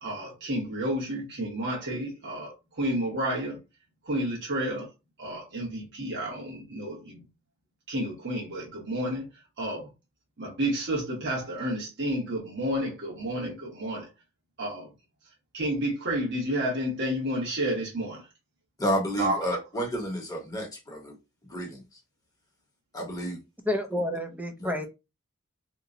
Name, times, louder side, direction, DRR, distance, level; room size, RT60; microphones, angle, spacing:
voice 1, 0.0-3.6 4.0-4.9 5.2-7.2 7.9-9.3 9.6-9.9 10.4-14.1 14.6-14.9 15.5-18.2 19.2-19.5, right 1 dB, 60° right, 1.2 m, -30 dB
voice 2, 18.8-21.1 21.5-21.8 22.9-23.4 24.6-24.8, equal, 15° left, 1.0 m, -31 dB
voice 3, 23.6-24.9, left 1 dB, 10° right, 0.5 m, -29 dB
2.9 x 2.2 x 3.7 m
head